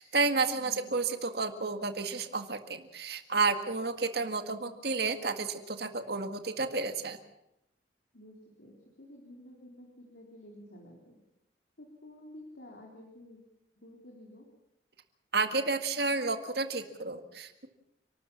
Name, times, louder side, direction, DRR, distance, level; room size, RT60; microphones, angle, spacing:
voice 1, 0.0-7.2 15.3-17.7, right 4 dB, 60° right, 8 dB, 1.9 m, -31 dB
voice 2, 0.5-0.9 8.1-11.2 11.8-13.4 13.8-14.5, left 1 dB, 75° left, 0 dB, 4.1 m, -51 dB
30.0 x 13.0 x 7.3 m, 0.84 s
head